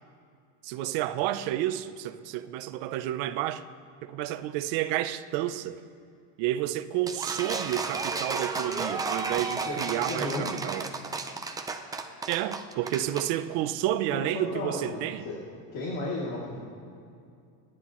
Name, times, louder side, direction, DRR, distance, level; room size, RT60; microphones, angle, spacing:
voice 1, 0.6-3.6 4.0-5.8 6.4-10.9 12.3-15.2, right 13 dB, 70° right, 0.8 m, -30 dB
sound 1, 7.1-13.3, right 4 dB, 10° right, 0.4 m, -33 dB
voice 2, 9.5-10.5 14.1-15.4 15.7-16.6, left 2 dB, 75° left, 2.9 m, -34 dB
29.0 x 10.5 x 3.1 m
cardioid pair, 165°, 45 cm